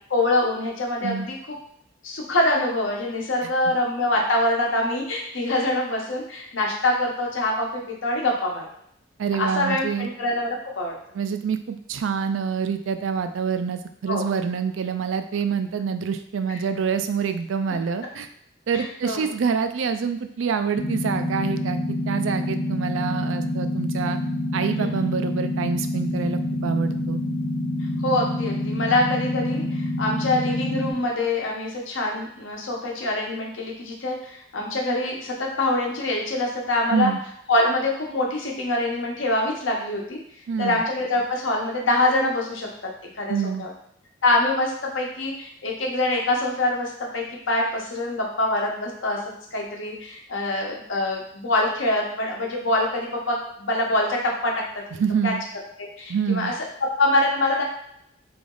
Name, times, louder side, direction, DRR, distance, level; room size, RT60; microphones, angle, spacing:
voice 1, 0.1-1.4 2.0-8.6 9.3-11.0 14.1-14.3 16.5-16.6 18.7-19.3 24.7-24.9 28.0-37.1 37.5-40.2 40.6-42.7 43.2-43.7 44.2-49.2 49.5-54.5 55.2-55.3 55.8-56.5 56.8-57.6, left 1 dB, 70° left, -1 dB, 1.0 m, -24 dB
voice 2, 9.2-10.1 11.1-18.3 18.7-24.2 24.5-27.2 36.9-37.2 40.5-40.8 43.3-43.7 55.0-55.4 56.1-56.5, right 6 dB, 70° right, 9 dB, 0.4 m, -26 dB
sound 1, 20.8-30.9, left 1 dB, 45° left, 0.8 m, -27 dB
3.4 x 3.0 x 3.8 m, 0.72 s
head